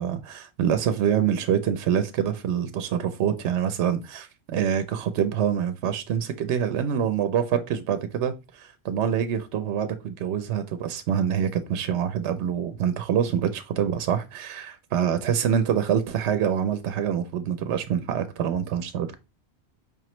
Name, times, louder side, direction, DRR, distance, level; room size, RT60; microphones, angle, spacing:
voice 1, 0.0-19.2, right 8 dB, 85° right, 0.9 m, -26 dB
4.9 x 2.9 x 3.0 m
omnidirectional pair, 1.1 m